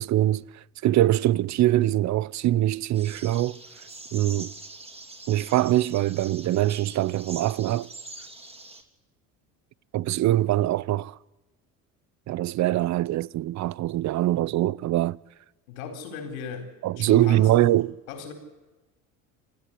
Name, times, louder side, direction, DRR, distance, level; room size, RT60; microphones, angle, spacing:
voice 1, 0.0-3.6 4.1-4.5 5.3-7.9 9.9-11.2 12.3-15.2 16.8-17.9, right 14 dB, 45° right, 0.6 m, -23 dB
sound 1, 2.9-8.8, right 2 dB, 15° right, 3.4 m, -44 dB
voice 2, 15.7-17.6 18.1-18.3, left 6 dB, 80° left, 4.2 m, -37 dB
28.0 x 10.0 x 9.9 m
hypercardioid pair, 75°, 41 cm